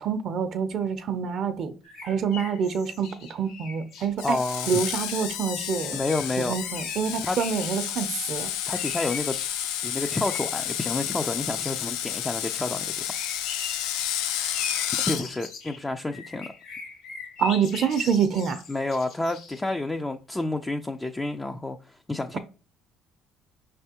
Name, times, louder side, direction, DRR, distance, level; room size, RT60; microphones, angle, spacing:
voice 1, 0.0-1.7 2.0-4.4 4.7-6.0 6.5-8.5 17.4-18.6 22.3-22.4, right 7 dB, 50° right, 0.5 m, -26 dB
sound 1, 1.8-4.1 5.8-8.1 8.6-9.6 9.9-11.8 13.1-19.6, left 5 dB, 70° left, 1.7 m, -41 dB
Screech, 4.2-15.2, left 10 dB, 90° left, 0.5 m, -31 dB
voice 2, 4.2-4.8 5.9-6.5 7.2-7.4 8.7-9.4 9.8-13.1 15.1-16.5 18.7-22.4, left 2 dB, 10° left, 0.3 m, -29 dB
5.2 x 3.3 x 2.8 m
cardioid pair, 120°, 0 cm